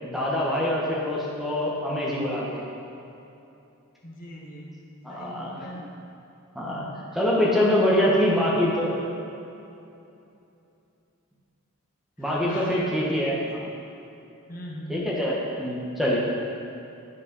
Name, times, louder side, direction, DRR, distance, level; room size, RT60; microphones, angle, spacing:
voice 1, 0.0-2.7 5.0-5.6 6.5-6.9 7.1-9.0 12.2-13.7 14.9-16.2, left 1 dB, ahead, -5 dB, 1.6 m, -24 dB
voice 2, 4.0-4.8 5.1-5.9 8.0-8.1 12.2-12.8 13.1-13.3 14.5-15.1, equal, 45° left, -2 dB, 1.5 m, -40 dB
9.8 x 5.3 x 5.7 m, 2.8 s
head